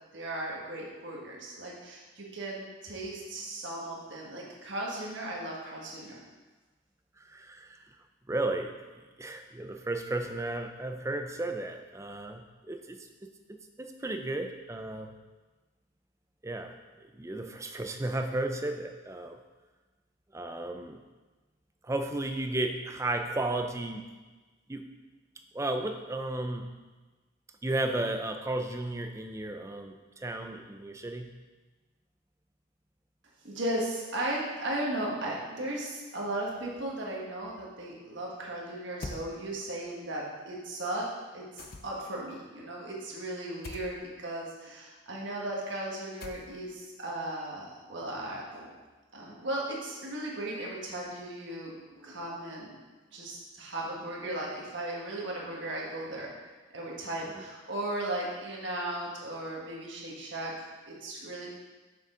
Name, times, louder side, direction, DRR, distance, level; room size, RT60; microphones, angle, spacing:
voice 1, 0.1-6.2 33.4-48.7 49.1-52.7 53.1-56.5 56.7-61.5, right 1 dB, 60° right, -3 dB, 1.5 m, -36 dB
voice 2, 7.2-7.8 8.3-8.7 9.2-13.3 13.8-15.1 16.4-16.7 17.1-19.4 20.3-21.0 21.8-24.1 24.7-24.9 25.5-26.7 27.6-31.3 57.4-57.5, right 2 dB, 15° right, 5 dB, 0.4 m, -34 dB
sound 1, 39.0-39.3 41.6-42.1 43.6-43.9 46.2-46.7, left 2 dB, 45° left, 0.5 m, -42 dB
6.8 x 6.1 x 3.8 m, 1.3 s
head